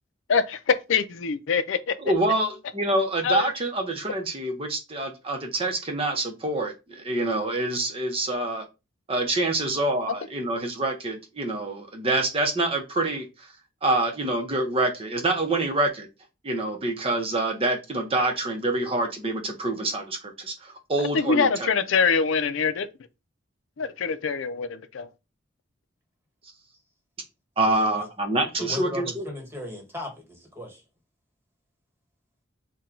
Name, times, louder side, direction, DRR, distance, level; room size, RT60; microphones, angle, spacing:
voice 1, 0.3-1.9 3.2-3.5 21.1-22.9 23.8-25.1, left 5 dB, 85° left, 0.4 m, -24 dB
voice 2, 2.0-8.6 9.1-13.5 13.8-16.1 16.4-21.7 27.6-29.3, right 2 dB, 30° right, 0.7 m, -26 dB
voice 3, 27.6-28.1 28.6-30.8, left 1 dB, 10° right, 1.3 m, -37 dB
4.3 x 2.3 x 3.8 m
head